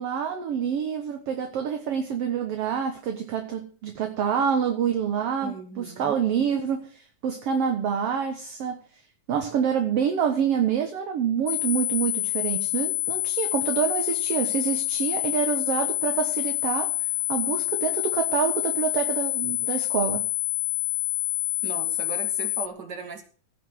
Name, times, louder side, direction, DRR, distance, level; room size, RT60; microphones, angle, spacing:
voice 1, 0.0-8.8 9.3-16.9 17.3-20.3, right 7 dB, 60° right, 5 dB, 2.0 m, -27 dB
voice 2, 5.4-6.2 21.6-23.2, right 5 dB, 35° right, 4 dB, 2.8 m, -37 dB
sound 1, 11.5-22.7, left 19 dB, 85° left, 2.3 m, -27 dB
17.0 x 5.9 x 7.7 m, 0.41 s
omnidirectional pair, 3.5 m